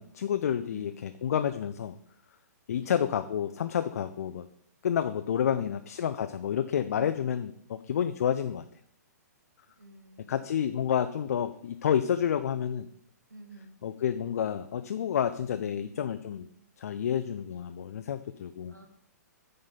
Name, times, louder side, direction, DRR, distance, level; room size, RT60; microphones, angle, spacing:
voice 1, 0.0-1.9 2.7-4.5 4.8-8.6 10.3-12.9 13.8-16.5 16.8-18.7, left 9 dB, 60° left, 9 dB, 0.5 m, -29 dB
voice 2, 0.7-1.1 2.7-3.0 5.4-5.8 6.9-7.3 9.8-10.6 13.3-13.8 15.5-15.9 18.7-18.9, right 2 dB, 90° right, 5 dB, 1.5 m, -51 dB
8.8 x 4.0 x 5.7 m, 0.68 s
figure-of-eight pair, 120°, 9 cm